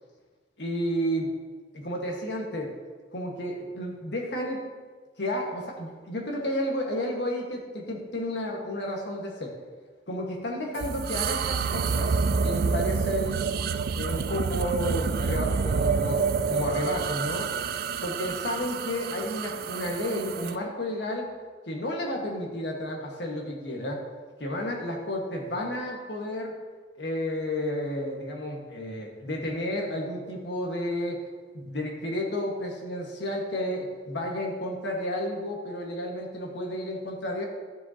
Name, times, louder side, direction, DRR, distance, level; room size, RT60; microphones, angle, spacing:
voice 1, 0.6-1.3 1.7-2.7 3.1-4.6 5.2-9.5 10.1-13.4 13.9-17.5 18.0-21.3 21.6-24.0 24.4-26.5 27.0-31.2 31.5-37.5, left 1 dB, 65° left, 0 dB, 1.6 m, -31 dB
sound 1, 10.7-20.6, right 5 dB, 55° right, 0.3 m, -28 dB
12.5 x 7.4 x 2.9 m, 1.5 s
head